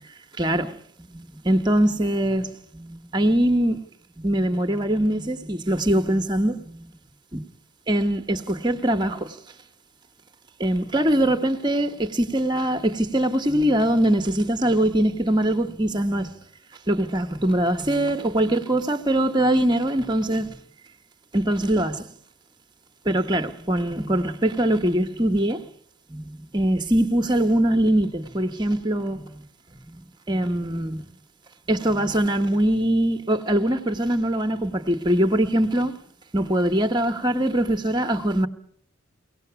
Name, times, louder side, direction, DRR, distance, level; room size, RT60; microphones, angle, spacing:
voice 1, 0.4-0.7 1.0-3.8 4.2-6.9 7.3-7.5 7.9-9.4 10.6-16.3 16.9-20.6 21.3-22.1 23.0-25.6 26.1-29.4 29.9-31.1 31.7-36.0 36.3-38.5, right 1 dB, 20° right, 1.1 m, -22 dB
23.5 x 18.0 x 6.9 m
head